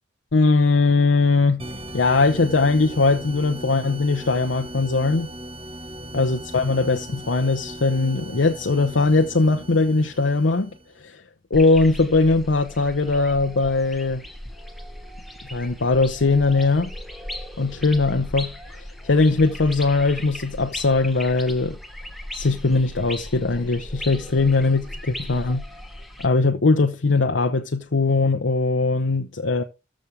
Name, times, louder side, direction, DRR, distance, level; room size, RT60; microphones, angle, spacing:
voice 1, 0.3-1.7 1.9-5.3 6.1-10.7 11.0-11.2 11.5-14.2 15.5-16.9 17.6-21.8 22.3-25.6 26.2-29.6, left 3 dB, 75° left, 0.8 m, -20 dB
sound 1, 1.6-11.0, right 1 dB, 30° right, 1.3 m, -38 dB
sound 2, 11.5-26.3, left 1 dB, ahead, 1.5 m, -37 dB
14.0 x 6.3 x 3.3 m
head